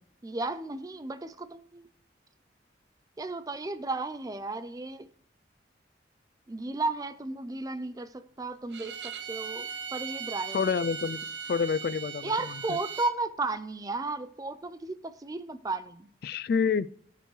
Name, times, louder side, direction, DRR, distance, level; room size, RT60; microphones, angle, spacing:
voice 1, 0.2-1.8 3.2-5.1 6.5-10.7 12.2-16.1, right 3 dB, 20° right, 0.4 m, -34 dB
Bowed string instrument, 8.7-13.2, right 7 dB, 75° right, 0.7 m, -38 dB
voice 2, 10.5-12.3 12.7-12.8 16.2-16.9, left 6 dB, 55° left, 0.3 m, -28 dB
16.0 x 6.7 x 3.2 m
head